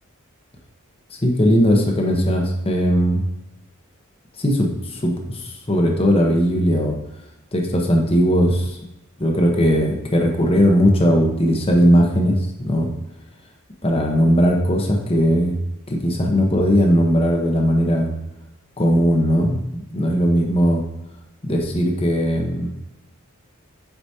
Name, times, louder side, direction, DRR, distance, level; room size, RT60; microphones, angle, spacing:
voice 1, 1.2-3.2 4.4-7.0 7.5-8.8 9.2-12.4 12.6-12.9 13.8-15.5 15.9-18.1 18.8-20.8 21.4-22.7, equal, 30° left, 1 dB, 1.1 m, -18 dB
8.1 x 5.0 x 2.8 m, 0.95 s
head